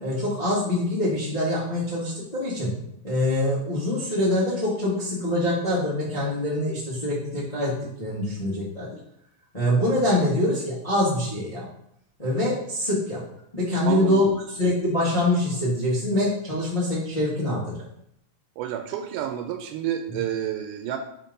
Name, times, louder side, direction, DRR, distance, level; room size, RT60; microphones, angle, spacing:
voice 1, 0.0-2.7 3.0-7.7 8.0-8.9 9.5-11.6 12.2-13.2 13.5-17.7, left 1 dB, 20° left, -9 dB, 1.1 m, -24 dB
voice 2, 13.9-14.3 18.6-21.0, right 10 dB, 90° right, 6 dB, 2.1 m, -30 dB
4.8 x 3.8 x 5.2 m, 0.74 s
omnidirectional pair, 3.5 m